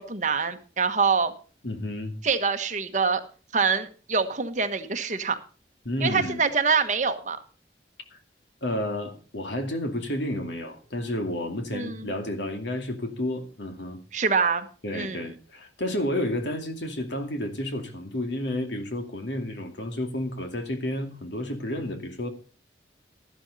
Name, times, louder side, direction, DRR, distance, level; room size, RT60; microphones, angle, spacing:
voice 1, 0.0-1.3 2.2-3.2 3.5-5.4 6.0-7.4 11.7-12.1 14.1-14.7 14.9-15.2, right 5 dB, 45° right, 8 dB, 1.3 m, -25 dB
voice 2, 1.6-2.1 5.8-6.4 8.1-8.2 8.6-14.0 14.8-22.3, left 1 dB, 85° left, 6 dB, 2.5 m, -31 dB
13.0 x 11.5 x 4.1 m, 0.38 s
head